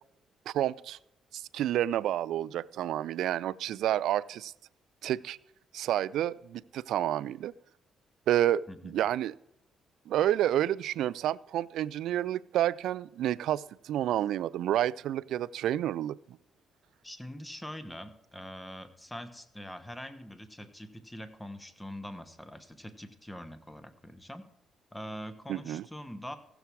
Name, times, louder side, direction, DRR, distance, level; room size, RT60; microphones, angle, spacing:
voice 1, 0.5-1.0 1.3-4.5 5.0-5.4 5.7-7.5 8.3-9.3 10.1-16.2 25.5-25.8, right 12 dB, 80° right, 19 dB, 0.3 m, -29 dB
voice 2, 8.7-9.0 17.0-24.5 24.9-26.4, equal, 10° left, 12 dB, 1.0 m, -43 dB
15.5 x 7.0 x 4.6 m, 0.83 s
cardioid pair, 90°, 0 cm